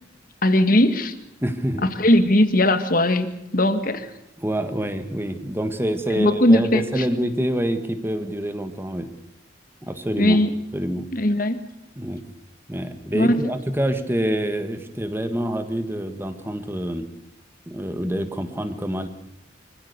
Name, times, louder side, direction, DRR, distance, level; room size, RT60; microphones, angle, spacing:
voice 1, 0.4-1.2 1.8-4.1 6.1-7.1 10.2-10.5 11.1-11.6 13.1-13.5, left 1 dB, 45° left, 10 dB, 1.8 m, -19 dB
voice 2, 1.4-1.9 4.4-9.1 9.8-10.4 10.7-11.0 12.0-12.2 12.7-17.1 17.7-19.1, equal, 10° right, 9 dB, 1.7 m, -26 dB
25.0 x 16.0 x 8.2 m, 0.84 s
head